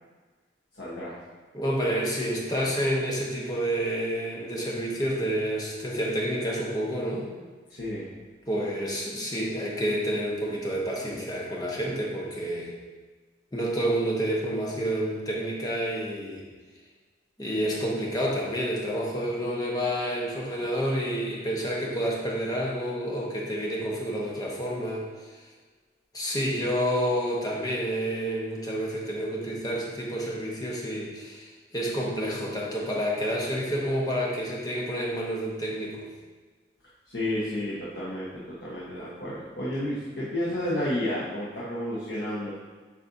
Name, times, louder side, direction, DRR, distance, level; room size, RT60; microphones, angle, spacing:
voice 1, 0.7-1.1 7.7-8.1 37.1-42.5, left 1 dB, 65° left, -7 dB, 1.1 m, -31 dB
voice 2, 1.5-7.3 8.5-12.7 13.5-16.5 17.4-25.3 26.1-36.1, equal, 20° left, -3 dB, 1.0 m, -29 dB
8.4 x 4.2 x 2.6 m, 1.4 s
head